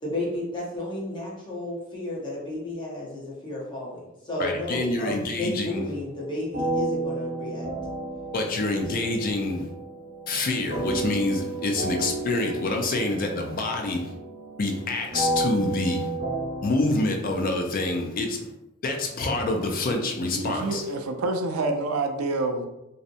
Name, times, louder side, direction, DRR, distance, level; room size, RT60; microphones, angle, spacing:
voice 1, 0.0-7.7 8.7-9.1, left 1 dB, 20° left, -6 dB, 0.8 m, -33 dB
voice 2, 4.4-5.9 8.3-9.6 10.3-14.1 14.6-16.1 16.6-18.5 18.8-20.8, left 2 dB, 40° left, 3 dB, 0.4 m, -27 dB
sound 1, 6.5-16.7, right 2 dB, 40° right, 1.0 m, -32 dB
voice 3, 20.4-22.6, right 2 dB, 80° right, 5 dB, 0.4 m, -27 dB
2.6 x 2.1 x 2.5 m, 0.92 s
head